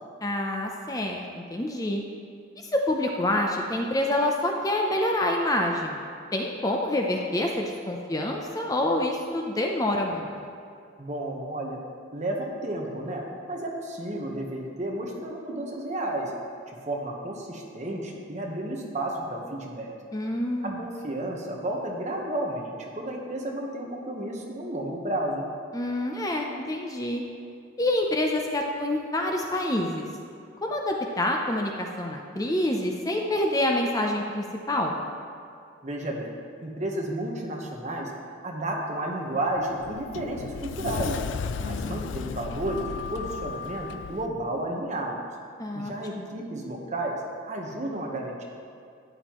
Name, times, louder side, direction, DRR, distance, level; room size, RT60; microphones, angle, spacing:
voice 1, 0.2-2.0 2.6-6.0 6.3-10.3 20.1-20.8 25.7-27.2 27.8-30.1 30.6-34.9 45.6-46.3, left 1 dB, 20° left, 1 dB, 0.6 m, -27 dB
voice 2, 11.0-11.8 12.1-16.3 16.7-19.9 20.6-25.5 35.8-36.3 36.6-38.1 38.4-41.2 41.6-45.3 45.7-48.4, right 1 dB, 35° right, 0 dB, 1.1 m, -32 dB
Sliding door, 39.4-44.3, left 5 dB, 70° left, 0.3 m, -34 dB
12.0 x 9.1 x 3.1 m, 2.4 s
head